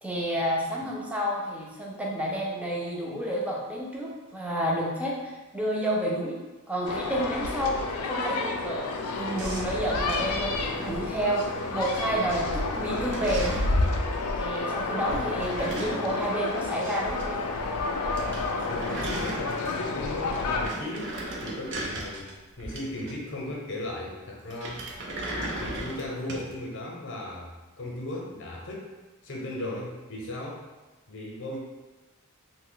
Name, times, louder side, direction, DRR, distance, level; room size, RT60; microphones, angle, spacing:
voice 1, 0.0-6.4 6.7-11.4 11.7-13.5 14.4-17.5, equal, 5° right, -4 dB, 0.5 m, -30 dB
sound 1, 6.8-20.7, left 3 dB, 80° left, 0.4 m, -30 dB
sound 2, 9.4-11.5 11.8-12.3 12.6-13.8 15.1-17.3 17.5-17.6 17.9-18.0 18.2-19.9 20.3-23.4 24.5-26.5, right 1 dB, 55° right, 0.5 m, -37 dB
voice 2, 18.7-22.3 22.6-24.8 25.4-28.9 29.2-30.6 31.1-31.6, left 1 dB, 60° left, -2 dB, 0.7 m, -37 dB
2.9 x 2.2 x 3.8 m, 1.2 s
head